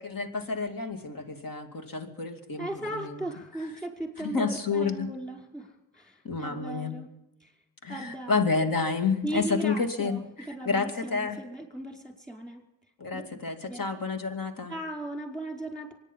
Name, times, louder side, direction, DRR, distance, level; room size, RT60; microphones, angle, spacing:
voice 1, 0.0-3.3 4.2-5.1 6.2-7.0 7.8-10.2 10.6-11.4 13.0-14.7, left 4 dB, 45° left, 6 dB, 2.7 m, -29 dB
voice 2, 2.6-7.1 7.4-7.5 7.9-8.4 9.2-12.6 13.1-13.2 13.7-13.9 14.7-15.9, right 1 dB, ahead, 2 dB, 5.1 m, -37 dB
24.5 x 10.5 x 5.5 m, 0.96 s
cardioid pair, 80°, 46 cm